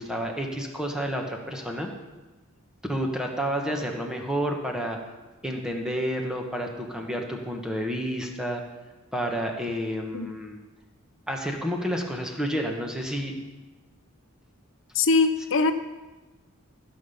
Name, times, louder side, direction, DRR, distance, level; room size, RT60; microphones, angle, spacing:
voice 1, 0.0-1.9 2.9-5.0 5.4-8.6 9.1-10.6 11.3-13.3, equal, 5° right, 1 dB, 1.4 m, -30 dB
voice 2, 14.9-15.7, left 3 dB, 65° left, 8 dB, 0.7 m, -22 dB
15.5 x 7.1 x 5.8 m, 1.2 s
head